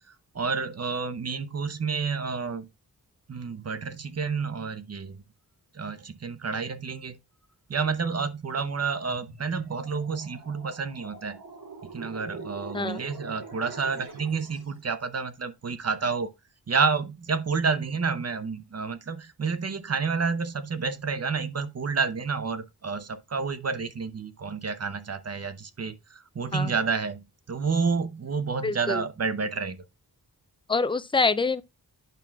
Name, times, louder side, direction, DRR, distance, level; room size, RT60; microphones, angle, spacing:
voice 1, 0.1-2.7 3.3-5.2 5.7-7.2 7.7-11.4 11.8-16.3 16.7-29.8, right 5 dB, 40° right, 0.7 m, -29 dB
sound 1, 9.1-14.8, right 3 dB, 70° right, 2.7 m, -43 dB
voice 2, 28.6-29.0 30.7-31.6, left 4 dB, 15° left, 0.3 m, -25 dB
9.1 x 5.9 x 2.3 m
wide cardioid pair, 105°, 39 cm